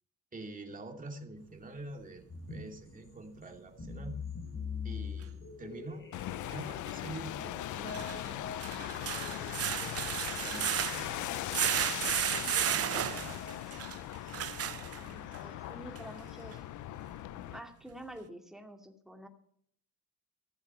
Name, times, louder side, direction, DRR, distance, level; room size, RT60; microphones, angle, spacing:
voice 1, 0.3-4.2 4.8-6.1 6.5-8.4 8.7-13.5, right 2 dB, 25° right, 2 dB, 2.7 m, -47 dB
sound 1, 2.3-16.9, left 5 dB, 40° left, 3.1 m, -46 dB
sound 2, 5.2-5.3 7.7-15.4 16.0-16.1 16.5-16.6, right 10 dB, 50° right, 0.8 m, -34 dB
sound 3, 6.1-17.6, left 15 dB, 75° left, 0.5 m, -40 dB
voice 2, 14.9-16.6 17.5-19.3, right 1 dB, ahead, 3 dB, 2.3 m, -48 dB
15.0 x 7.2 x 8.7 m, 0.67 s
cardioid pair, 90°, 30 cm